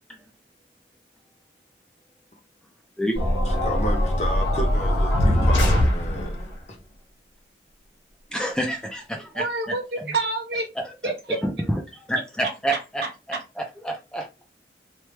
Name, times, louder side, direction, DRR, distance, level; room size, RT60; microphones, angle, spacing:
sound 1, 3.2-6.5, equal, 85° left, 1.4 m, -21 dB
voice 1, 3.5-6.4, equal, 35° left, 0.7 m, -32 dB
voice 2, 8.3-9.5 10.8-14.4, right 1 dB, 5° left, 0.4 m, -29 dB
voice 3, 9.3-10.7 11.0-11.4, right 2 dB, 65° right, 0.9 m, -27 dB
3.2 x 2.2 x 3.1 m
head